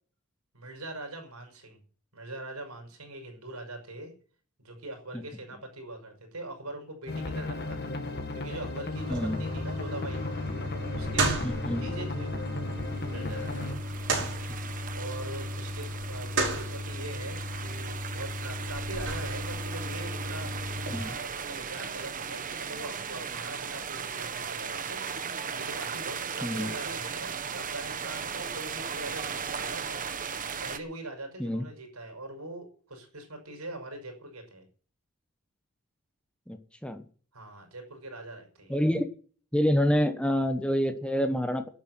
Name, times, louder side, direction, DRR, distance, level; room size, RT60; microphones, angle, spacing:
voice 1, 0.5-1.8 2.1-4.1 4.6-10.2 10.9-11.5 11.8-12.4 13.0-14.1 14.9-30.0 30.6-34.6 37.3-38.8, right 2 dB, 80° right, 4 dB, 6.1 m, -42 dB
sound 1, 7.1-13.7, left 2 dB, 45° left, 2.1 m, -35 dB
sound 2, 8.9-21.0, right 1 dB, 55° right, 5.7 m, -34 dB
voice 2, 9.1-9.4 11.4-11.9 20.9-21.1 26.4-26.7 31.4-31.7 36.5-37.0 38.7-39.1 39.5-41.7, equal, 5° left, 8 dB, 1.1 m, -27 dB
sound 3, 12.8-30.8, right 6 dB, 35° right, 1.0 m, -37 dB
12.0 x 8.3 x 9.2 m, 0.43 s
head